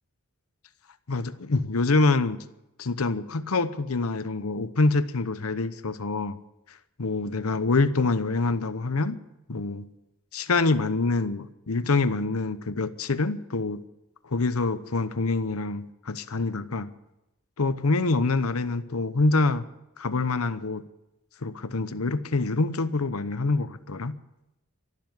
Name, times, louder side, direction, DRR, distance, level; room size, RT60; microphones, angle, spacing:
voice 1, 1.1-2.4 2.8-6.4 7.0-9.2 9.5-9.9 10.3-13.8 14.2-16.9 17.6-19.6 20.0-20.8 21.4-24.1, left 3 dB, 80° left, 12 dB, 0.9 m, -26 dB
12.5 x 12.0 x 9.5 m, 0.91 s
head